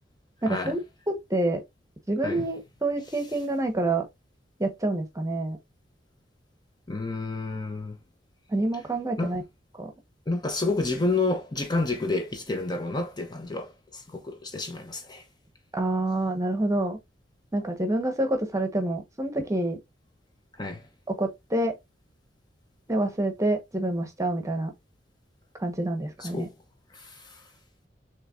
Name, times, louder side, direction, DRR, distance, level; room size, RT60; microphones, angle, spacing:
voice 1, 0.4-0.8 1.1-1.6 2.1-4.0 4.6-5.6 8.5-9.4 9.8-9.9 15.7-17.0 17.5-19.8 21.1-21.7 22.9-24.7 25.6-26.5, right 2 dB, 20° right, 1.1 m, -27 dB
voice 2, 6.9-8.0 9.2-9.3 10.3-15.2 20.6-20.8 26.2-26.5 26.9-27.4, left 3 dB, 25° left, 0.8 m, -30 dB
6.5 x 3.2 x 2.5 m
head